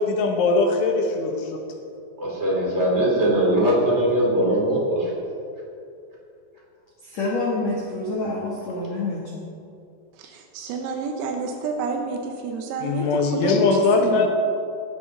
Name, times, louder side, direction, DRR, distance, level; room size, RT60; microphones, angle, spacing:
voice 1, 0.0-1.6 12.8-14.3, left 4 dB, 70° left, 1 dB, 3.8 m, -21 dB
voice 2, 2.2-5.2, right 1 dB, 20° right, -3 dB, 2.2 m, -21 dB
voice 3, 7.0-9.3, left 2 dB, 90° left, -4 dB, 1.5 m, -27 dB
voice 4, 10.1-14.3, right 4 dB, 85° right, 3 dB, 3.7 m, -29 dB
17.5 x 12.5 x 4.0 m, 2.5 s
omnidirectional pair, 6.0 m